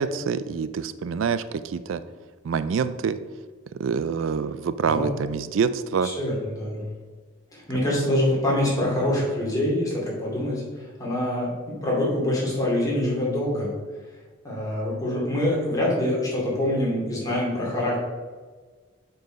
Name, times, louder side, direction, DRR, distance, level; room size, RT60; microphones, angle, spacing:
voice 1, 0.0-2.0 2.4-3.2 3.8-6.1, right 6 dB, 75° right, 13 dB, 0.4 m, -26 dB
voice 2, 6.0-6.8 7.5-13.7 14.4-18.0, left 1 dB, 20° left, -5 dB, 2.6 m, -25 dB
7.6 x 4.7 x 5.2 m, 1.4 s
head